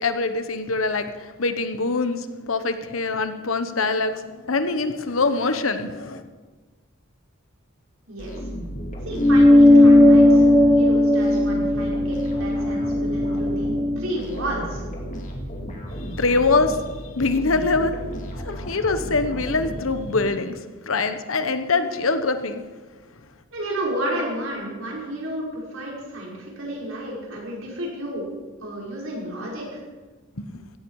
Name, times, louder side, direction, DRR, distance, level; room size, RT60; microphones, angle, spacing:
voice 1, 0.0-6.2 16.0-16.8 17.2-18.0 18.4-20.6 20.9-22.6 30.4-30.5, left 3 dB, 80° left, 9 dB, 1.2 m, -24 dB
sound 1, 8.2-20.4, equal, 40° left, 2.6 m, -34 dB
voice 2, 9.0-10.5 10.7-14.9 23.5-28.3 28.6-29.8, right 1 dB, 85° right, -3 dB, 5.4 m, -31 dB
sound 2, 9.2-14.0, left 1 dB, 20° left, 1.8 m, -16 dB
16.5 x 14.0 x 4.9 m, 1.3 s
head